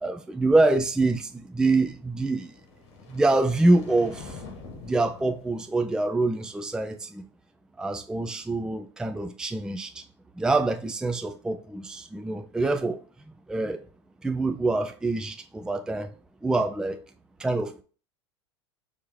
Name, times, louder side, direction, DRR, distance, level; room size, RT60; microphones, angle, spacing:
voice 1, 0.0-2.5 3.1-4.2 4.8-7.2 7.8-10.0 10.4-13.0 13.5-13.8 14.2-16.1 16.4-17.0 17.4-17.8, right 2 dB, 5° right, 0.4 m, -25 dB
sound 1, 2.3-6.6, left 3 dB, 65° left, 1.6 m, -45 dB
4.8 x 2.8 x 3.6 m
hypercardioid pair, 90°, 15 cm